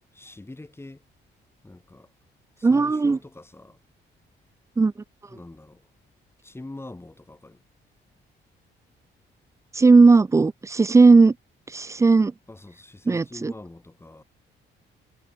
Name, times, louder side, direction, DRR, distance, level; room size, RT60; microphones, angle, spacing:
voice 1, 0.2-1.0 1.6-2.1 2.6-3.8 5.3-5.8 6.4-7.6 12.5-14.2, left 2 dB, 10° left, 1.8 m, -43 dB
voice 2, 2.6-3.2 4.8-4.9 9.7-11.3 11.7-12.3 13.1-13.5, right 4 dB, 15° right, 0.4 m, -16 dB
cardioid pair, 90°, 20 cm